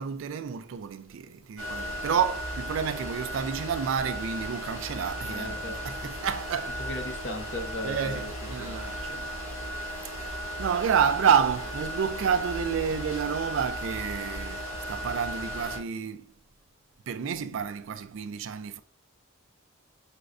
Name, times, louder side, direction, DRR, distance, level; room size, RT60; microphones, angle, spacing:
voice 1, 0.0-6.9 7.8-9.3 10.2-10.3 10.6-16.3 17.1-18.8, right 7 dB, 65° right, 0.3 m, -29 dB
sound 1, 1.6-15.8, equal, 75° left, 1.6 m, -36 dB
voice 2, 5.3-6.1 6.8-8.3 8.6-8.8 10.3-10.5, left 1 dB, 55° left, 0.7 m, -37 dB
4.9 x 2.2 x 2.4 m
head